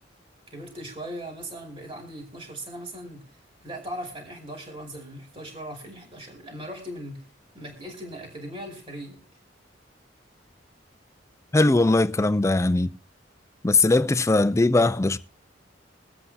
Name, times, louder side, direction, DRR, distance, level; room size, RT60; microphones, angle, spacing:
voice 1, 0.5-7.3 7.5-9.2, right 1 dB, 30° right, 2.5 m, -39 dB
voice 2, 11.5-12.9 13.6-15.2, left 2 dB, 15° left, 0.4 m, -20 dB
23.0 x 7.9 x 2.7 m
head